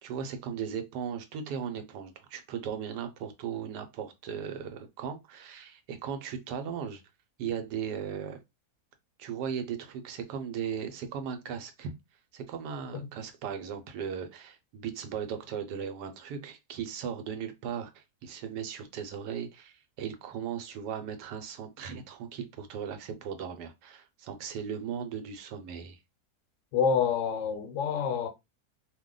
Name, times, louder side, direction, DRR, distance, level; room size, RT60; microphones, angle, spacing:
voice 1, 0.0-7.0 7.4-8.4 9.2-11.9 12.3-26.0, right 7 dB, 85° right, 1.2 m, -37 dB
voice 2, 26.7-28.3, left 6 dB, 65° left, 0.8 m, -27 dB
2.8 x 2.1 x 3.6 m
omnidirectional pair, 1.7 m